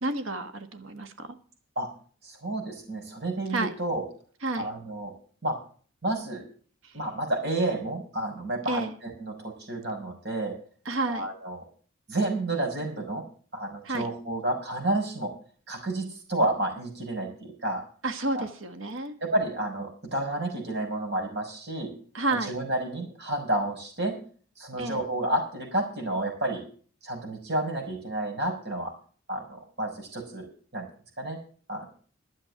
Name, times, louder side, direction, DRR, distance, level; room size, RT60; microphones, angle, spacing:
voice 1, 0.0-1.3 3.5-3.7 4.4-4.7 6.8-6.9 8.7-9.0 10.8-11.3 13.8-14.1 18.0-19.1 22.1-22.5 24.8-25.0, right 2 dB, 70° right, 8 dB, 1.5 m, -30 dB
voice 2, 2.2-4.0 4.6-5.1 5.4-5.6 6.0-6.4 6.9-10.6 11.1-11.6 12.1-13.2 13.5-15.3 15.7-17.8 18.3-18.4 19.2-21.9 22.4-24.2 24.6-26.6 27.0-28.9 29.3-30.9 31.2-31.4 31.7-31.9, right 1 dB, 50° right, 2 dB, 5.6 m, -30 dB
12.0 x 7.5 x 7.6 m, 0.43 s
head